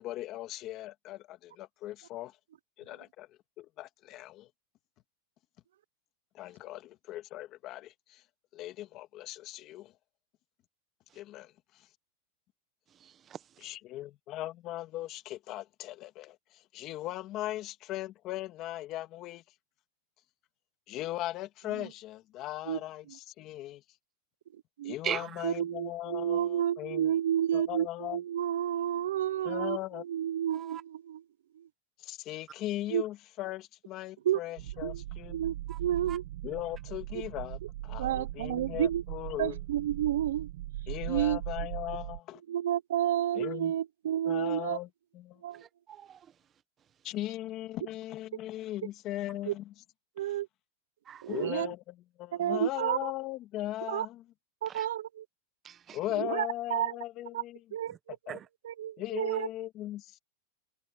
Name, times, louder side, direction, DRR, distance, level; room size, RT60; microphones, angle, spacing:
voice 1, 0.0-2.4 2.8-3.3 3.6-4.5 6.3-8.2 8.5-9.9 11.1-11.9 13.6-19.4 20.9-23.8 24.8-27.1 27.5-28.2 29.4-30.0 32.0-35.4 36.4-39.6 40.9-42.4 43.3-43.7 44.2-45.4 47.0-49.7 50.2-50.4 51.3-54.2 55.9-57.6 58.3-58.4 59.0-60.2, left 15 dB, 35° left, 2.0 m, -39 dB
voice 2, 13.0-13.4 25.0-25.4 30.5-30.8 35.7-35.8 36.1-36.2 45.6-46.3 51.1-51.4 54.7-54.9 55.6-56.0 58.3-58.5, right 9 dB, 20° right, 1.0 m, -39 dB
voice 3, 25.4-29.8 30.1-31.2 31.6-31.7 32.9-33.0 34.3-34.4 34.8-35.0 35.3-36.2 38.0-39.0 39.4-40.5 41.1-41.4 42.5-44.8 45.4-45.6 49.5-49.6 50.2-50.5 51.2-51.7 52.3-53.1 53.9-54.1 54.6-55.2 56.2-56.9 57.3-57.4 57.7-58.2 58.6-59.5, right 11 dB, 90° right, 0.6 m, -30 dB
sound 1, 34.6-42.2, right 14 dB, 70° right, 1.1 m, -39 dB
supercardioid pair, 160°, 0 cm